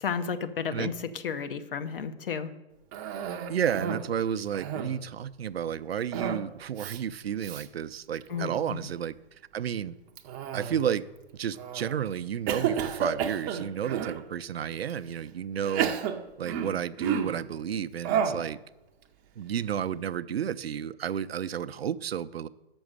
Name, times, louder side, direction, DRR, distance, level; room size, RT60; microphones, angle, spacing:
voice 1, 0.0-2.5 8.3-8.9, left 6 dB, 60° left, 10 dB, 0.8 m, -32 dB
Cough, 2.9-4.1 4.4-5.1 6.1-6.5 6.8-7.0 7.4-7.7 8.2-8.6 10.2-11.0 11.6-12.0 12.5-14.2 14.9-15.0 15.6-17.4 18.0-18.5, right 8 dB, 20° right, 0.5 m, -31 dB
voice 2, 3.5-9.1 9.5-9.9 10.5-11.0 11.3-15.9 16.4-18.6 19.4-22.5, right 9 dB, 80° right, 13 dB, 0.5 m, -31 dB
6.4 x 6.1 x 6.4 m, 1.0 s
hypercardioid pair, 130°, 30 cm